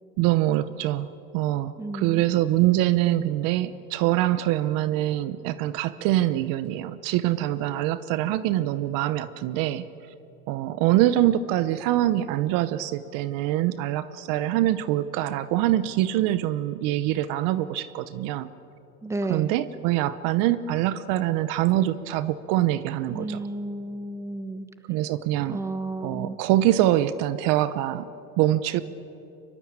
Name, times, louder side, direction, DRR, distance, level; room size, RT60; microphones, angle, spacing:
voice 1, 0.2-1.1 1.3-9.8 10.5-18.5 19.3-23.5 24.9-25.6 26.0-28.1 28.4-28.8, right 14 dB, 45° right, 14 dB, 0.9 m, -24 dB
voice 2, 1.8-2.2 19.0-19.6 23.1-24.7 25.5-26.4, right 2 dB, 5° right, 10 dB, 1.2 m, -32 dB
24.0 x 23.0 x 8.8 m, 2.8 s
supercardioid pair, 130°, 47 cm